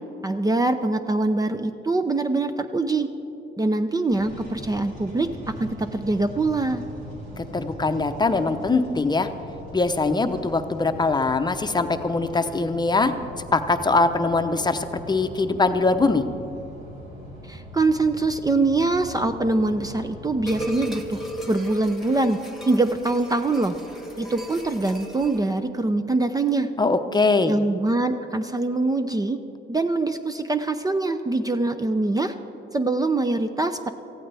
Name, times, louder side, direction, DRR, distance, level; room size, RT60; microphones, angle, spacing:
voice 1, 0.2-3.1 3.6-5.3 5.6-6.8 17.5-21.2 21.5-22.4 22.7-23.8 24.2-26.7 27.5-29.4 29.7-32.3 32.7-33.9, right 2 dB, 20° right, 8 dB, 0.5 m, -23 dB
sound 1, 4.1-21.1, equal, 85° right, 4.0 m, -41 dB
voice 2, 7.4-9.3 9.7-16.2 26.8-27.5, left 3 dB, 20° left, 8 dB, 0.8 m, -22 dB
sound 2, 20.5-25.6, equal, ahead, 1.7 m, -36 dB
18.5 x 14.5 x 3.4 m, 3.0 s
cardioid pair, 90°, 20 cm